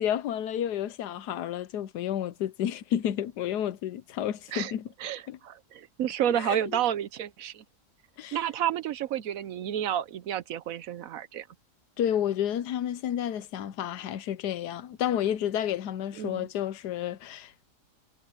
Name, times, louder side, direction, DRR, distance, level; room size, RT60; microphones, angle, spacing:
voice 1, 0.0-4.9 5.3-5.4 6.3-6.8 8.2-8.4 12.0-17.7, left 10 dB, 85° left, 1.3 m, -31 dB
voice 2, 5.0-7.6 8.3-11.4 16.2-16.5, right 10 dB, 65° right, 1.0 m, -30 dB
omnidirectional pair, 1.7 m